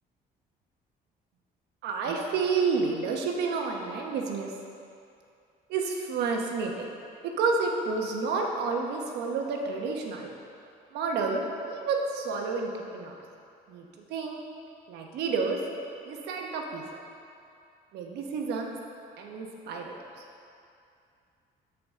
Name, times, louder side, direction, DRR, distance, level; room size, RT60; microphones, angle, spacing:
voice 1, 1.8-4.5 5.7-6.9 7.2-10.4 10.9-13.2 13.7-14.4 14.9-15.6 16.1-16.8 17.9-18.7 19.2-19.9, right 4 dB, 80° right, 1 dB, 1.1 m, -30 dB
13.0 x 4.8 x 3.7 m, 2.5 s
cardioid pair, 110°, 17 cm